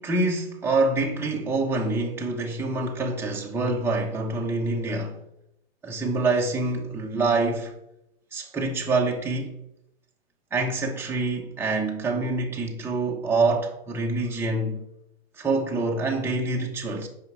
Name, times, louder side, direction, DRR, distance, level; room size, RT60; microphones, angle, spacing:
voice 1, 0.0-5.2 5.8-7.7 8.3-9.6 10.5-14.8 15.4-17.1, right 3 dB, 10° right, 1.1 m, -26 dB
8.8 x 5.4 x 4.8 m
hypercardioid pair, 130°, 31 cm